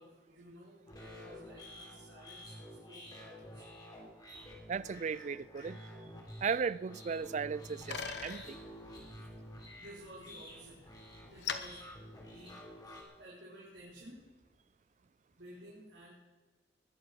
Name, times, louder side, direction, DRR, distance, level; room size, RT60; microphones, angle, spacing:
voice 1, 0.0-2.5 2.9-3.6 9.3-10.8 11.3-11.8 12.2-12.6 13.2-14.2 15.4-16.1, right 1 dB, 85° right, 4.4 m, -54 dB
sound 1, 0.9-13.0, equal, 25° left, 3.9 m, -50 dB
voice 2, 4.7-5.9 6.4-8.6, right 6 dB, 40° right, 0.4 m, -36 dB
Bicycle, 7.2-12.9, left 6 dB, 65° left, 1.1 m, -46 dB
21.0 x 8.0 x 6.7 m
head